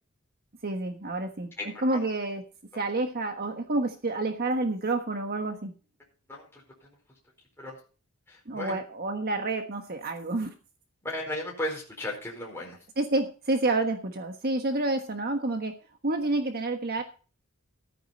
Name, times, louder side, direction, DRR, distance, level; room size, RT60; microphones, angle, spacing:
voice 1, 0.6-1.5 1.8-2.4 2.8-5.7 8.5-10.5 13.0-15.7 16.0-17.0, right 2 dB, 45° right, 5 dB, 1.4 m, -29 dB
voice 2, 1.6-2.0 6.3-6.9 7.6-7.8 8.3-8.8 11.0-12.8, left 1 dB, 10° left, -3 dB, 4.4 m, -36 dB
14.0 x 9.4 x 4.3 m, 0.36 s
head